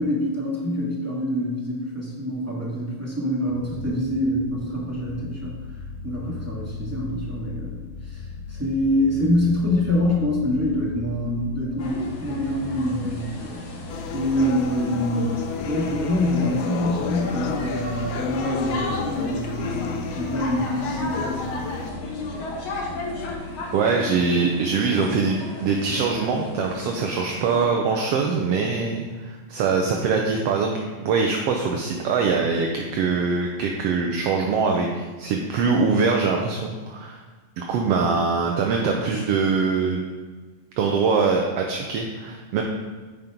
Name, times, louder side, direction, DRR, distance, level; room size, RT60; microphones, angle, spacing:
voice 1, 0.0-5.6 6.0-7.8 8.1-8.2 8.5-13.6 14.1-15.3 15.6-21.7, left 1 dB, 5° right, -6 dB, 1.7 m, -25 dB
sound 1, 3.5-23.3, left 3 dB, 35° right, 1.6 m, -38 dB
sound 2, 11.8-27.6, left 2 dB, 50° left, 1.9 m, -34 dB
sound 3, 13.9-21.9, left 7 dB, 80° left, 2.1 m, -32 dB
voice 2, 23.7-30.7 31.0-37.2 37.6-40.0 40.8-42.6, right 4 dB, 70° right, 1 dB, 1.5 m, -23 dB
9.3 x 6.1 x 5.2 m, 1.4 s
omnidirectional pair, 3.5 m